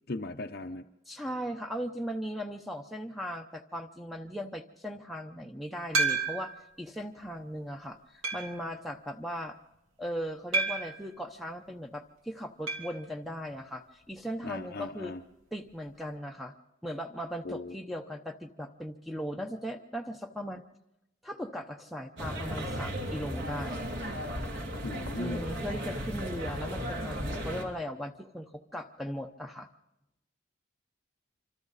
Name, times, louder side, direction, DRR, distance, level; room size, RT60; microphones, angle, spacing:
voice 1, 0.1-0.9 14.4-15.2 17.4-17.7 24.8-25.4, left 2 dB, 50° left, 3 dB, 0.7 m, -37 dB
voice 2, 1.1-9.6 10.0-15.1 15.5-16.5 16.8-20.6 21.2-23.8 25.2-29.7, equal, ahead, 5 dB, 0.8 m, -38 dB
sound 1, 5.9-6.6 7.2-7.3 8.2-8.6 10.5-11.0 12.7-13.0 13.2-13.3 13.6-13.7 15.7-15.8, right 3 dB, 80° right, 2.9 m, -30 dB
sound 2, 22.2-27.6, equal, 60° right, 2.9 m, -35 dB
26.0 x 26.0 x 4.1 m, 0.89 s
head